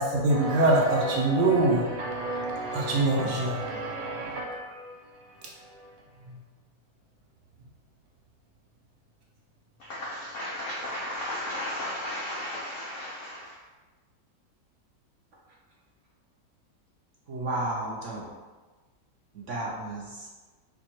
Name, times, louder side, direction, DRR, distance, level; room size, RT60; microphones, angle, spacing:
voice 1, 0.0-4.8, right 2 dB, 80° right, -1 dB, 1.5 m, -25 dB
voice 2, 9.8-13.6, left 1 dB, 75° left, -4 dB, 0.7 m, -34 dB
voice 3, 17.3-18.3 19.3-20.3, right 1 dB, 60° right, -4 dB, 0.8 m, -33 dB
4.2 x 2.6 x 4.4 m, 1.3 s
omnidirectional pair, 2.0 m